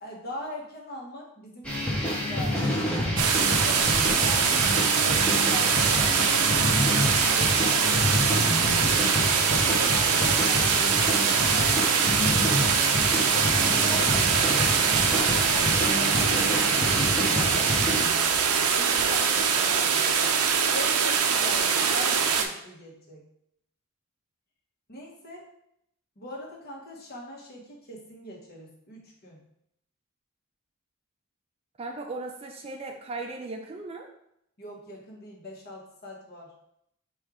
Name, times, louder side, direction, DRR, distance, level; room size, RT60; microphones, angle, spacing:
voice 1, 0.0-3.0 3.6-4.7 5.0-8.6 9.5-11.2 11.5-12.8 13.3-20.2 20.7-23.2 24.9-25.5 26.2-29.4 34.6-36.5, left 1 dB, 45° left, -2 dB, 1.1 m, -41 dB
sound 1, 1.6-18.0, left 1 dB, 5° left, 0.7 m, -28 dB
sound 2, 3.2-22.5, right 6 dB, 90° right, 0.5 m, -23 dB
voice 2, 31.8-34.1, right 3 dB, 25° right, 3 dB, 0.4 m, -37 dB
4.4 x 2.4 x 4.7 m, 0.76 s
head